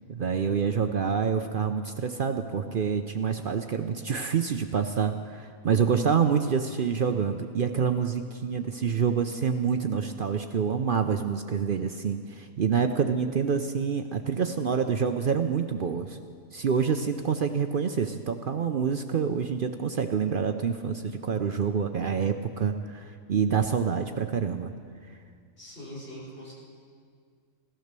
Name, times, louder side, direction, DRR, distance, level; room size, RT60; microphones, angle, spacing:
voice 1, 0.1-16.2 16.5-24.7, right 6 dB, 55° right, 7 dB, 0.6 m, -27 dB
voice 2, 25.6-26.5, equal, 45° left, -5 dB, 4.8 m, -42 dB
16.5 x 12.5 x 6.7 m, 2.1 s
omnidirectional pair, 1.4 m